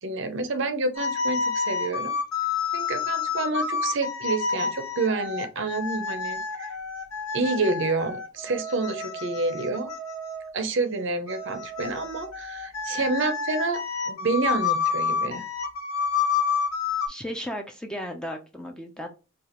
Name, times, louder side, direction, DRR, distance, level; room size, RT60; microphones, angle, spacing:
voice 1, 0.0-2.1 2.7-6.7 7.3-9.9 10.5-13.8 14.1-15.4, right 3 dB, 55° right, 9 dB, 0.6 m, -28 dB
sound 1, 1.0-10.5 11.3-17.1, left 5 dB, 70° left, 1.1 m, -29 dB
voice 2, 17.1-19.1, equal, 5° left, 3 dB, 0.5 m, -35 dB
4.8 x 2.4 x 2.9 m, 0.31 s
head